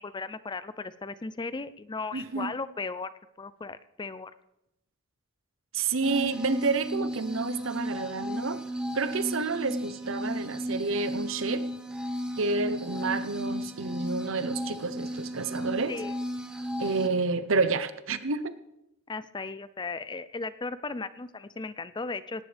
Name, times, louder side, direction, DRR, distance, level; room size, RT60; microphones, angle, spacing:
voice 1, 0.0-3.1 3.4-4.3 15.9-16.1 19.1-22.4, left 3 dB, 20° left, 14 dB, 0.4 m, -36 dB
voice 2, 2.1-2.5 5.7-8.6 8.9-11.7 12.4-15.9 16.8-18.6, right 4 dB, 70° right, 12 dB, 0.8 m, -29 dB
sound 1, 6.0-17.1, equal, 5° right, 1.2 m, -34 dB
18.0 x 17.0 x 3.4 m, 0.88 s
head